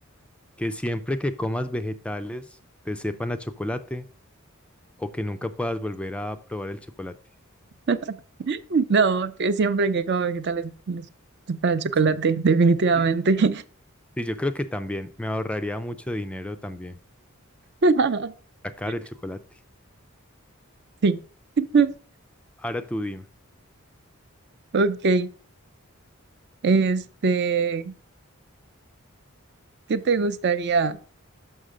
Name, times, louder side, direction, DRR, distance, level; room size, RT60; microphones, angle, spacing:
voice 1, 0.6-2.5 2.9-4.1 5.0-7.1 12.1-12.2 14.2-17.0 18.6-19.4 22.6-23.3, left 1 dB, 5° left, 9 dB, 0.3 m, -30 dB
voice 2, 8.5-11.1 11.5-13.6 17.8-18.3 21.0-21.2 21.6-21.9 24.7-25.3 26.6-27.9 29.9-31.0, right 4 dB, 55° right, 13 dB, 0.5 m, -22 dB
6.4 x 5.7 x 4.9 m, 0.39 s
head